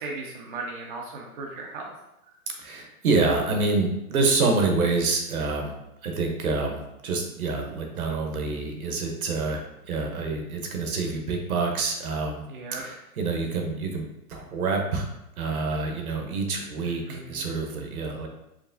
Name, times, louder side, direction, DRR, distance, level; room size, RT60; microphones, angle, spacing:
voice 1, 0.0-1.9 12.5-12.8 16.8-17.5, right 3 dB, 35° right, -1 dB, 0.5 m, -37 dB
voice 2, 2.6-5.7 6.0-12.4 12.8-15.1 15.4-18.3, right 3 dB, 70° right, 3 dB, 1.0 m, -27 dB
4.8 x 2.9 x 2.6 m, 0.87 s
hypercardioid pair, 150°, 44 cm